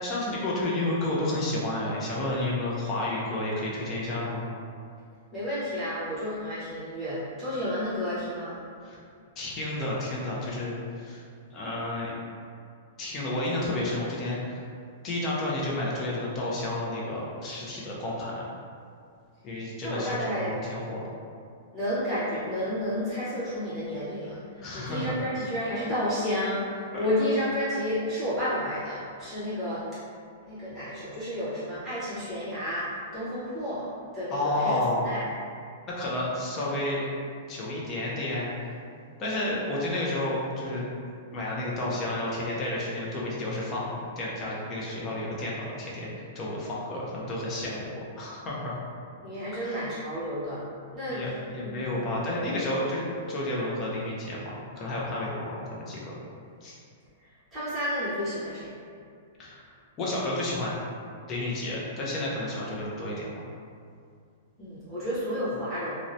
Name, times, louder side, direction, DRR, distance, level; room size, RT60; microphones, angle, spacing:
voice 1, 0.0-4.5 8.8-9.0 9.4-11.2 11.5-12.1 13.0-14.6 15.0-18.4 19.4-21.0 24.6-25.2 26.9-27.1 34.3-35.1 36.0-37.1 37.5-38.5 39.2-40.9 41.3-43.9 44.2-48.8 49.6-49.9 51.1-56.2 56.6-56.8 59.4-59.6 60.0-60.8 61.3-63.4, left 1 dB, 20° left, -5 dB, 0.4 m, -31 dB
voice 2, 5.3-8.6 19.8-20.6 21.7-29.8 30.4-33.9 34.1-34.8 35.0-35.2 49.2-50.6 50.9-51.2 51.6-52.0 57.2-58.7 64.6-65.9, equal, 10° right, -13 dB, 0.9 m, -31 dB
2.7 x 2.0 x 2.5 m, 2.3 s
supercardioid pair, 175°, 0 cm